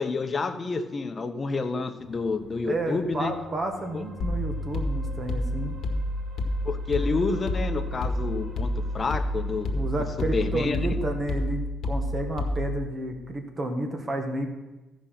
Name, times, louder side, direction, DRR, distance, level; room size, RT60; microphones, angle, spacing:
voice 1, 0.0-3.3 3.9-4.0 6.6-9.8 10.3-10.8, left 4 dB, 35° left, 7 dB, 0.9 m, -29 dB
sound 1, 2.0-11.6, right 1 dB, 65° right, 1.7 m, -47 dB
voice 2, 2.7-5.8 9.7-14.5, right 2 dB, 35° right, 4 dB, 1.5 m, -31 dB
sound 2, 4.2-12.9, left 1 dB, 70° left, 1.2 m, -29 dB
15.0 x 5.2 x 5.8 m, 1.1 s
cardioid pair, 90°, 0 cm